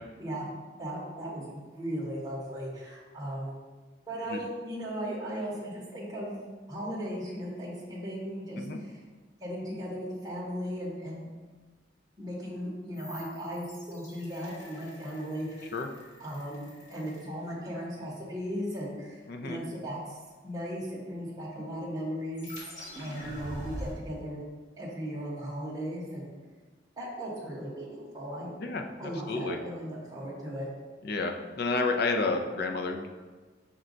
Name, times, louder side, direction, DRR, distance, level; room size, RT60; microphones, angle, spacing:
voice 1, 0.8-3.5 4.1-6.4 6.7-9.0 9.4-11.3 12.2-15.7 16.2-20.2 20.4-22.5 23.0-24.4 24.8-26.3 27.0-28.5 29.0-30.7, equal, 20° right, -5 dB, 0.7 m, -37 dB
sound 1, 12.9-18.0 22.3-23.9, equal, 40° left, 1.4 m, -45 dB
voice 2, 19.3-19.6 28.6-29.6 31.0-33.1, left 3 dB, 55° left, 4 dB, 0.4 m, -30 dB
5.9 x 2.2 x 3.8 m, 1.3 s
head